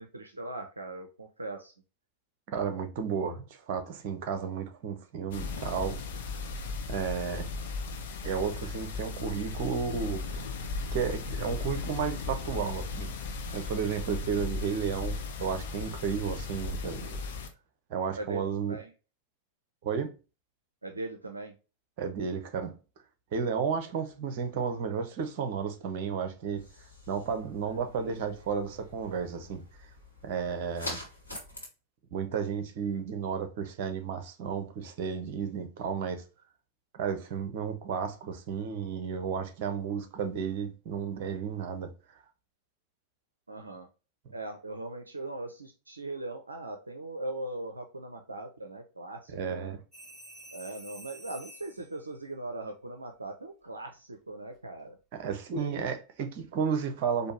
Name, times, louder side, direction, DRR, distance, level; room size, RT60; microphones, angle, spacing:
voice 1, 0.0-1.7 18.2-18.9 20.8-21.5 43.5-43.9 44.3-49.8 50.5-55.0 55.6-55.8, right 2 dB, 80° right, 0.5 m, -40 dB
voice 2, 2.5-6.0 6.9-7.5 8.2-10.4 10.9-13.1 13.5-17.2 17.9-18.8 19.8-20.1 22.0-22.7 23.3-26.6 27.1-29.7 30.2-31.0 32.1-36.2 36.9-41.9 49.3-49.8 55.1-57.3, right 6 dB, 50° right, 0.8 m, -33 dB
sound 1, 5.3-17.5, left 3 dB, 60° left, 0.7 m, -36 dB
sound 2, 26.6-31.7, left 1 dB, 80° left, 1.6 m, -45 dB
sound 3, 49.9-51.9 54.3-54.6, equal, ahead, 2.0 m, -48 dB
4.4 x 2.7 x 3.0 m
figure-of-eight pair, 90°, 0 cm